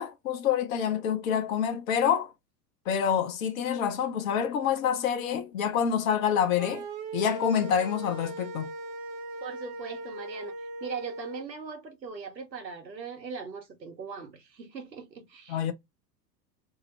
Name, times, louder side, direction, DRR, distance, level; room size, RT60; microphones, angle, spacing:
voice 1, 0.0-2.3 2.9-6.8 7.1-8.7 15.5-15.7, left 8 dB, 55° left, 0.8 m, -27 dB
sound 1, 6.6-11.4, right 2 dB, 35° right, 0.6 m, -39 dB
voice 2, 9.4-10.5 10.8-15.7, right 5 dB, 90° right, 0.9 m, -40 dB
2.8 x 2.0 x 2.9 m
figure-of-eight pair, 85°, 50 cm